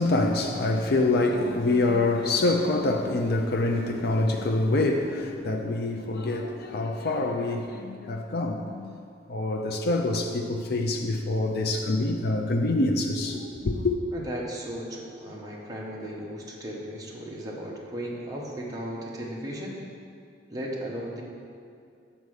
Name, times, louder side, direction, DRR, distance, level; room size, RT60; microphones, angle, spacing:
voice 1, 0.0-8.9 9.3-13.9, left 2 dB, 60° left, 0.5 m, -26 dB
voice 2, 14.1-19.8 20.5-21.2, equal, 20° right, 1.0 m, -36 dB
8.1 x 4.3 x 6.4 m
head